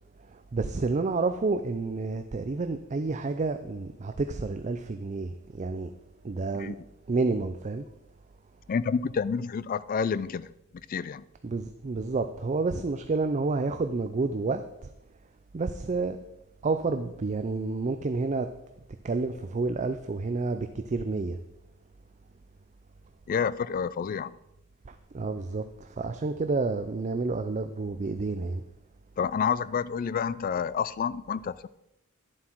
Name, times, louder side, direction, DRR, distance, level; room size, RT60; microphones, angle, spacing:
voice 1, 0.3-5.9 6.2-6.8 7.1-7.9 11.4-14.9 15.5-16.2 16.6-18.5 19.0-21.4 24.9-28.6, right 3 dB, 35° right, 8 dB, 0.4 m, -29 dB
voice 2, 8.7-10.5 10.9-11.2 23.3-24.3 29.2-31.7, left 6 dB, 45° left, 18 dB, 0.3 m, -29 dB
11.0 x 7.4 x 4.5 m, 0.88 s
head